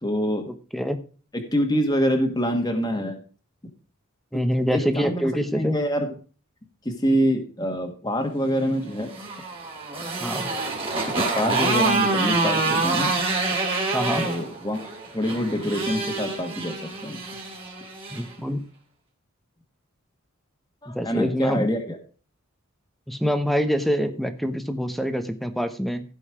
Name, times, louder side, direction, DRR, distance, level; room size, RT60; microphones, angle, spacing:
voice 1, 0.0-0.4 1.5-3.2 4.3-4.4 4.7-5.3 5.5-6.1 6.8-9.1 11.1-13.1 14.1-14.8 15.1-17.2 20.8-22.0, equal, 20° left, 3 dB, 1.7 m, -25 dB
voice 2, 4.3-5.8 10.2-10.5 13.9-14.3 18.1-18.6 20.9-21.7 23.1-26.0, equal, ahead, 9 dB, 1.0 m, -25 dB
Motorcycle, 8.8-18.3, right 3 dB, 25° right, 3.5 m, -26 dB
16.0 x 5.5 x 4.9 m, 0.38 s
head